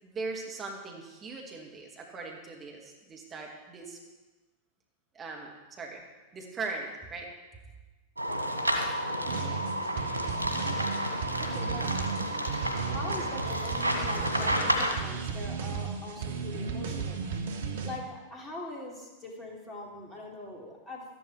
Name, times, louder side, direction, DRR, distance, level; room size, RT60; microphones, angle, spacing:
voice 1, 0.0-4.0 5.1-6.0 6.3-7.3, right 3 dB, 20° right, 0 dB, 2.3 m, -39 dB
sound 1, 8.2-15.0, equal, 90° left, 1.8 m, -31 dB
sound 2, 9.3-18.0, right 6 dB, 60° right, 1.2 m, -35 dB
voice 2, 11.4-11.9 12.6-17.2 17.8-21.0, left 2 dB, 20° left, -2 dB, 3.2 m, -42 dB
13.5 x 11.0 x 4.9 m, 1.2 s
figure-of-eight pair, 90°, 0 cm